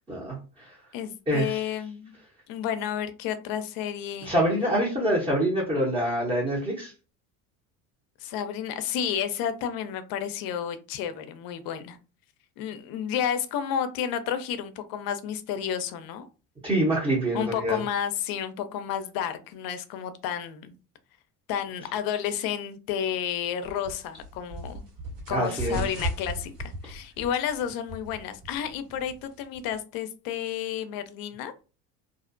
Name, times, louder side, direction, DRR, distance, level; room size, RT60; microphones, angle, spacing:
voice 1, 0.1-0.8 1.3-1.6 4.2-6.9 16.6-17.8 25.3-25.8, right 1 dB, 15° right, -3 dB, 0.8 m, -26 dB
voice 2, 0.9-2.2 2.5-4.3 8.2-12.0 12.6-16.3 17.3-20.7 21.5-24.8 25.3-31.5, left 9 dB, 55° left, 11 dB, 0.5 m, -31 dB
sound 1, 23.6-29.8, right 1 dB, 45° right, 1.4 m, -37 dB
2.5 x 2.0 x 2.5 m, 0.34 s
hypercardioid pair, 80°, 44 cm